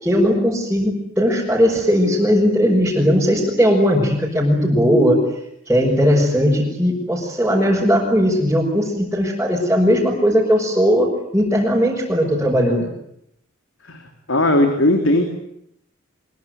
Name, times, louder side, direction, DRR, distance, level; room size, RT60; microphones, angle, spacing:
voice 1, 0.0-5.2 5.7-12.9, equal, 5° right, -6 dB, 6.3 m, -18 dB
voice 2, 14.3-15.2, left 1 dB, 85° left, 5 dB, 3.4 m, -17 dB
25.5 x 23.0 x 9.6 m, 0.75 s
head